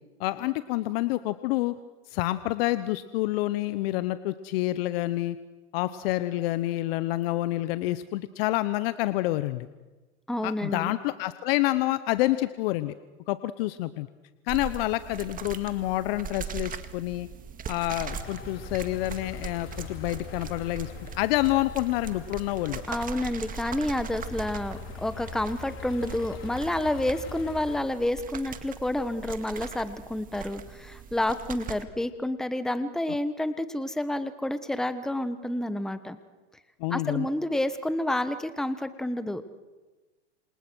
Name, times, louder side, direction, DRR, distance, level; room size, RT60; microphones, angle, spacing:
voice 1, 0.2-1.7 2.1-5.4 5.7-9.7 10.4-12.9 13.3-14.1 14.5-17.3 17.7-22.8 36.8-37.3, left 17 dB, 60° left, 13 dB, 1.0 m, -28 dB
voice 2, 10.3-11.0 22.9-36.2 36.9-39.5, left 1 dB, ahead, 11 dB, 1.2 m, -29 dB
sound 1, 14.5-31.8, right 7 dB, 25° right, 2.0 m, -41 dB
sound 2, 18.0-27.8, left 6 dB, 35° left, 4.6 m, -43 dB
28.5 x 27.0 x 6.3 m, 1.2 s
hypercardioid pair, 115°, 34 cm